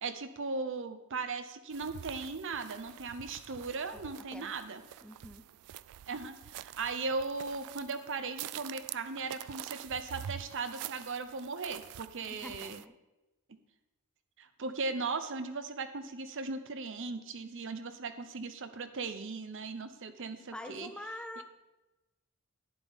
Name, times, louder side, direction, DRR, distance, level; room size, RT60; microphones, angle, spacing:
voice 1, 0.0-4.8 6.1-12.8 14.4-20.9, right 4 dB, 60° right, 10 dB, 0.7 m, -38 dB
sound 1, 1.7-12.8, right 11 dB, 90° right, 0.3 m, -47 dB
voice 2, 3.9-4.5 5.0-5.5 12.3-12.9 20.5-21.4, left 1 dB, 5° left, 6 dB, 0.6 m, -45 dB
11.0 x 9.7 x 3.6 m, 1.0 s
head